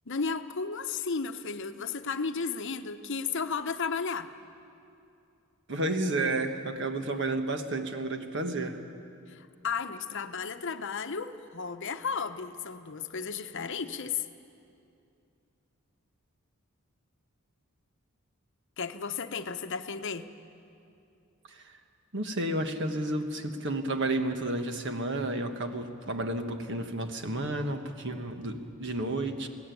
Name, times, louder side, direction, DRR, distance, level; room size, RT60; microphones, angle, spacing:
voice 1, 0.1-4.3 9.3-14.3 18.8-20.3, left 5 dB, 60° left, 8 dB, 0.8 m, -34 dB
voice 2, 5.7-8.8 21.5-21.7 22.1-29.5, right 2 dB, 55° right, 6 dB, 1.5 m, -31 dB
21.5 x 17.0 x 9.3 m, 2.6 s
head